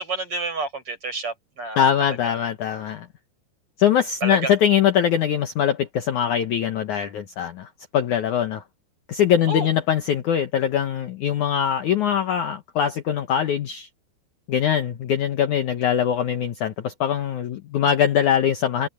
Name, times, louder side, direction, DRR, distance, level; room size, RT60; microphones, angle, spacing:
voice 1, 0.0-2.3 4.2-4.5 9.5-9.7, right 3 dB, 30° right, 7.6 m, -29 dB
voice 2, 1.7-3.1 3.8-8.6 9.1-13.9 14.5-18.9, left 9 dB, 80° left, 1.7 m, -22 dB
omnidirectional pair, 5.2 m